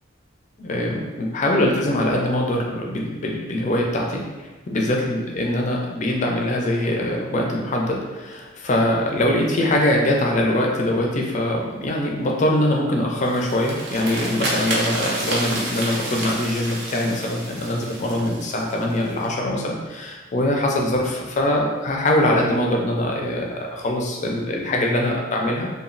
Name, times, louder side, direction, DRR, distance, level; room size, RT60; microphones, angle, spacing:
voice 1, 0.6-25.7, left 1 dB, 40° left, 0 dB, 0.4 m, -23 dB
sound 1, 13.2-19.3, right 1 dB, 60° right, 0.6 m, -30 dB
3.0 x 2.3 x 2.5 m, 1.2 s
head